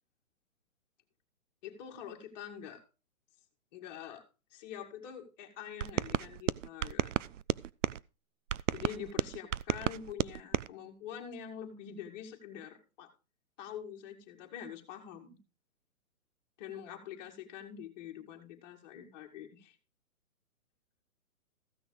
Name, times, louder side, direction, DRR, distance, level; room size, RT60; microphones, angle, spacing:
voice 1, 1.6-2.8 3.7-4.2 4.5-7.1 8.7-13.1 13.6-15.4 16.6-19.7, left 9 dB, 30° left, 1 dB, 2.3 m, -45 dB
sound 1, 5.8-8.0 8.5-10.7, right 11 dB, 60° right, 0.5 m, -33 dB
15.0 x 6.2 x 4.9 m, 0.32 s
hypercardioid pair, 155°, 42 cm